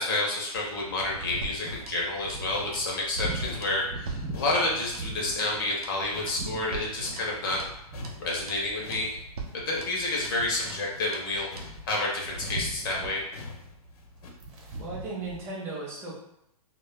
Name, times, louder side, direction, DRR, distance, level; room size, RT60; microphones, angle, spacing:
voice 1, 0.0-7.6 8.2-9.1 9.5-13.2, left 2 dB, 35° left, -2 dB, 0.5 m, -29 dB
sound 1, 0.5-15.4, right 1 dB, 50° right, 0.8 m, -41 dB
sound 2, 1.4-1.5 1.6-5.9 6.1-7.7 7.9-14.3, left 3 dB, 70° left, 0.8 m, -45 dB
sound 3, 1.4-2.5 2.7-2.9 3.2-3.4 3.6-5.1 5.4-5.6 5.8-6.0 6.3-6.5 6.7-7.8 8.0-8.2 8.5-8.7 8.9-9.1 9.4-10.4 10.7-10.9 11.1-11.3 11.6-11.8, right 4 dB, 75° right, 0.5 m, -43 dB
voice 2, 14.8-16.2, right 3 dB, 15° right, -5 dB, 0.5 m, -36 dB
2.1 x 2.0 x 3.3 m, 0.80 s
hypercardioid pair, 165°, 19 cm